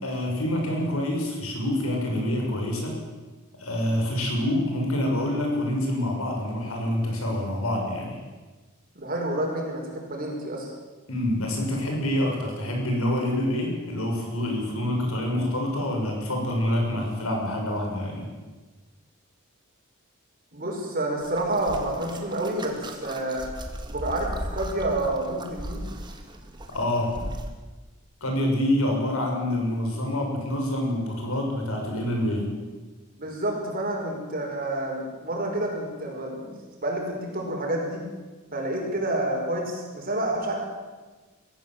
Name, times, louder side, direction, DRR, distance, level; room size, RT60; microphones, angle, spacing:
voice 1, 0.0-3.0 3.6-8.2 11.1-18.2 26.7-27.3 28.2-32.4, left 1 dB, 80° left, 0 dB, 6.5 m, -26 dB
voice 2, 9.0-10.7 20.5-23.5 23.9-25.8 33.1-36.5 36.8-38.0 38.5-40.5, right 1 dB, 40° right, 0 dB, 5.4 m, -29 dB
sound 1, 21.2-27.5, right 1 dB, 20° right, 2.0 m, -37 dB
23.0 x 15.5 x 7.8 m, 1.3 s
head